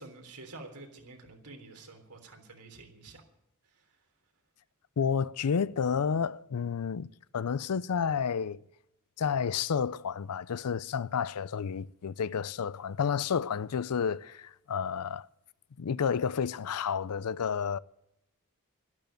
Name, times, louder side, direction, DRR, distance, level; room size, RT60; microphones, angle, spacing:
voice 1, 0.0-3.2 3.7-3.9, right 2 dB, 85° right, 3.6 m, -49 dB
voice 2, 5.0-8.6 9.2-15.3 15.8-17.8, left 6 dB, 80° left, 0.5 m, -30 dB
12.5 x 12.0 x 9.2 m
head